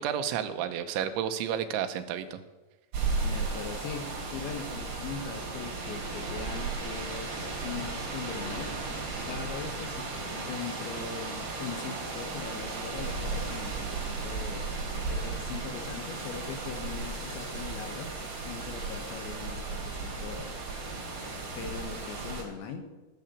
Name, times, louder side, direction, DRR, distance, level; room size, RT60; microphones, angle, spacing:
voice 1, 0.0-2.4, right 9 dB, 90° right, 9 dB, 3.3 m, -31 dB
sound 1, 2.9-22.4, right 3 dB, 60° right, 5.0 m, -35 dB
voice 2, 3.2-8.7 9.3-10.1 10.4-14.6 14.9-18.1 18.4-20.5 21.6-22.9, left 6 dB, 80° left, 5 dB, 3.8 m, -40 dB
17.0 x 6.8 x 8.4 m, 1.2 s
omnidirectional pair, 5.2 m